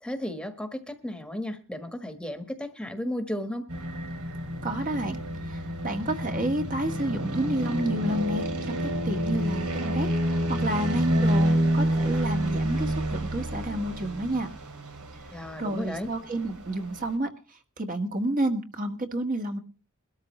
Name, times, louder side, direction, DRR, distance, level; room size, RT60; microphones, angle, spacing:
voice 1, 0.0-3.7 15.3-16.1, left 1 dB, 5° left, 1.4 m, -34 dB
sound 1, 3.7-17.1, equal, 85° right, 2.7 m, -29 dB
voice 2, 4.6-5.2 5.4-14.5 15.6-19.6, right 1 dB, 40° right, 1.7 m, -30 dB
21.5 x 13.0 x 3.2 m
head